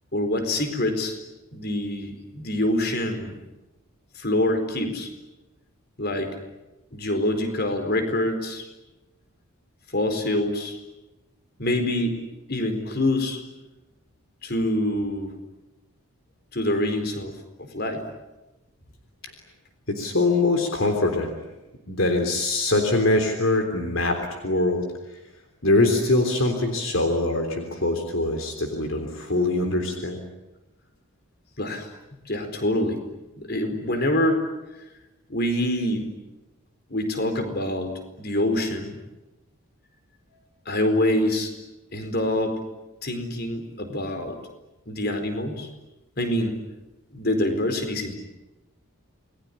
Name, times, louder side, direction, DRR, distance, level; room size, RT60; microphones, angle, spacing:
voice 1, 0.1-1.2 1.5-3.4 4.2-5.1 6.0-6.3 6.9-8.6 9.9-10.8 11.6-12.2 12.5-13.4 14.4-15.3 16.5-18.0 31.6-31.9 32.3-33.0 33.4-34.4 35.3-36.1 36.9-39.0 40.7-41.5 41.9-42.6 43.0-44.4 44.9-45.7 46.2-46.6 47.1-48.1, left 1 dB, 45° left, 7 dB, 4.5 m, -25 dB
voice 2, 19.9-21.5 21.9-25.2 25.6-30.2, left 2 dB, 60° left, 5 dB, 3.5 m, -23 dB
28.5 x 21.0 x 10.0 m, 1.0 s
head